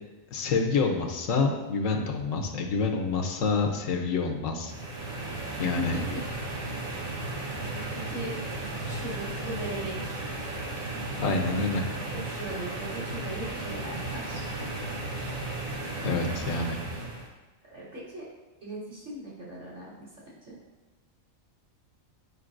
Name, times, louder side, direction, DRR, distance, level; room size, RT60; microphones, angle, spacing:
voice 1, 0.3-4.7 5.6-6.0 11.2-11.8 16.0-16.8, left 4 dB, 75° left, 2 dB, 1.2 m, -27 dB
sound 1, 4.7-17.3, right 2 dB, 85° right, 1.5 m, -35 dB
voice 2, 5.6-6.2 7.9-8.4 8.8-10.2 12.2-14.4 17.7-18.2 18.6-20.1 20.4-20.6, right 1 dB, 60° right, -8 dB, 2.9 m, -38 dB
9.5 x 5.2 x 2.6 m, 1.2 s
omnidirectional pair, 1.4 m